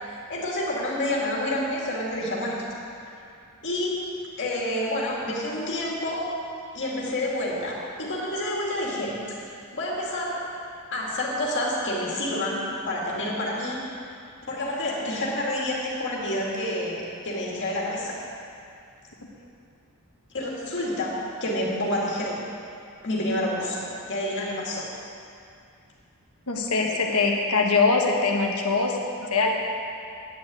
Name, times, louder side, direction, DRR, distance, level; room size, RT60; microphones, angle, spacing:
voice 1, 0.0-2.7 3.6-4.0 4.4-6.3 6.7-9.2 9.7-10.5 10.9-13.8 14.5-18.2 20.3-22.4 23.0-24.9 26.8-26.9, left 1 dB, 55° left, -4 dB, 2.5 m, -28 dB
voice 2, 26.5-29.0 29.3-29.5, left 4 dB, 80° left, 0 dB, 1.4 m, -22 dB
9.8 x 6.7 x 8.6 m, 2.5 s
head